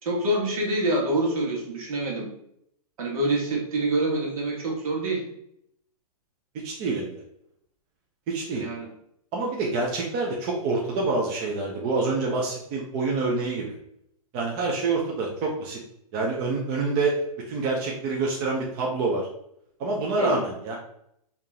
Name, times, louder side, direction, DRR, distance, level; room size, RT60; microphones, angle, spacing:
voice 1, 0.0-2.3 3.0-5.2 8.6-8.9 20.2-20.4, right 1 dB, 65° right, -1 dB, 1.5 m, -26 dB
voice 2, 6.6-7.1 8.3-8.6 9.3-13.7 14.3-15.8 16.1-17.2 17.5-19.3 19.8-20.8, right 3 dB, 25° right, -2 dB, 0.6 m, -27 dB
3.6 x 2.9 x 3.6 m, 0.73 s
hypercardioid pair, 155°, 20 cm